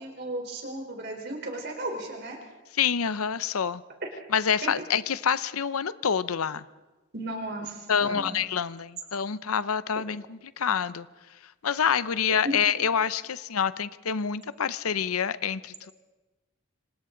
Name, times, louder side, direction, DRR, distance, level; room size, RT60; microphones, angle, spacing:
voice 1, 0.0-2.4 4.6-4.7 7.1-8.4 12.4-12.6, right 1 dB, 50° right, 1 dB, 4.0 m, -35 dB
voice 2, 2.7-3.8 4.3-6.6 7.9-15.9, left 7 dB, 90° left, 16 dB, 0.7 m, -27 dB
27.0 x 25.5 x 3.9 m, 1.2 s
head